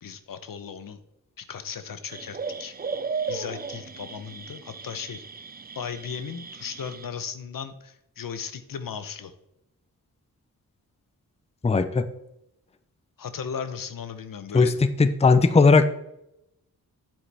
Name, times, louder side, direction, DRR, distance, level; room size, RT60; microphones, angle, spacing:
voice 1, 0.0-1.0 1.4-2.7 3.3-5.2 5.8-9.3 13.2-14.8, left 7 dB, 65° left, 11 dB, 0.9 m, -36 dB
sound 1, 2.1-7.1, right 5 dB, 25° right, 0.5 m, -35 dB
voice 2, 11.6-12.1 14.5-14.7 15.0-15.9, left 4 dB, 15° left, 11 dB, 0.6 m, -18 dB
8.4 x 7.7 x 3.4 m, 0.83 s
cardioid pair, 65°, 36 cm